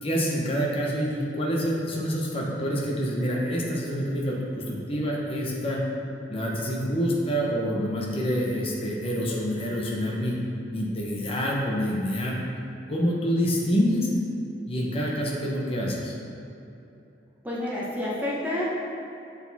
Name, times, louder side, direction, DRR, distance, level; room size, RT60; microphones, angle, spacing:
voice 1, 0.0-5.8 6.3-10.4 10.7-12.4 12.9-14.1 14.7-16.1, equal, 30° left, -3 dB, 0.9 m, -27 dB
voice 2, 17.4-18.6, left 1 dB, 10° right, -7 dB, 0.9 m, -29 dB
6.7 x 4.2 x 4.1 m, 2.8 s
head